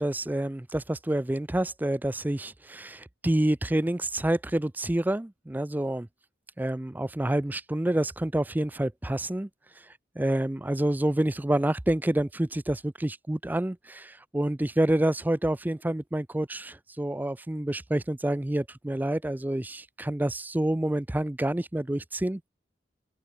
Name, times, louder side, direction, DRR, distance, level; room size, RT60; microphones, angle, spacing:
voice 1, 0.0-6.1 6.6-9.5 10.2-22.4, right 1 dB, 10° right, 0.4 m, -28 dB
open air
head